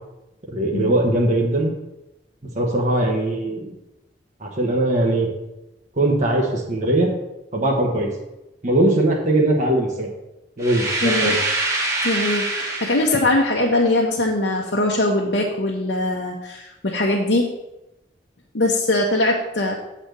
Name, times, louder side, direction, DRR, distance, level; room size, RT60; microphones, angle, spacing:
voice 1, 0.5-1.7 2.5-3.7 4.4-5.3 5.9-7.1 7.5-8.1 8.6-10.1 10.6-11.4, right 1 dB, 45° right, -1 dB, 1.2 m, -20 dB
sound 1, 10.6-13.4, right 2 dB, 20° right, 1.5 m, -24 dB
voice 2, 11.0-11.4 12.0-17.5 18.5-19.7, left 2 dB, 75° left, -1 dB, 0.9 m, -21 dB
7.7 x 4.2 x 6.7 m, 0.96 s
head